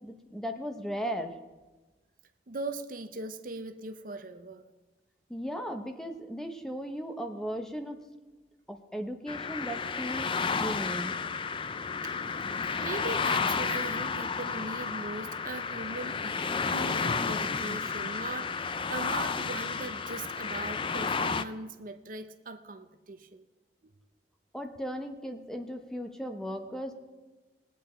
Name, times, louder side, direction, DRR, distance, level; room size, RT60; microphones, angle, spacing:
voice 1, 0.0-1.4 5.3-8.0 8.7-11.2 24.5-26.9, equal, 5° left, 5 dB, 0.8 m, -37 dB
voice 2, 2.5-4.6 12.0-12.1 12.7-23.4 23.8-23.9, right 2 dB, 50° right, 9 dB, 0.7 m, -40 dB
sound 1, 9.3-21.4, left 5 dB, 30° left, 0.4 m, -32 dB
20.5 x 8.5 x 4.4 m, 1.2 s
head